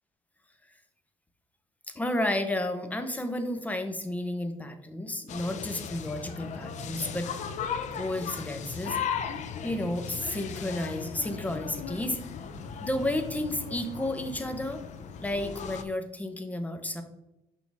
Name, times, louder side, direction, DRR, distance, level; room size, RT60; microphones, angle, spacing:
voice 1, 1.9-7.3 7.9-9.0 9.6-12.2 12.8-14.8 15.2-17.0, left 1 dB, 10° left, 6 dB, 0.9 m, -32 dB
sound 1, 5.3-15.8, left 7 dB, 60° left, 0.6 m, -37 dB
6.3 x 5.7 x 3.5 m, 0.90 s
cardioid pair, 115°, 13 cm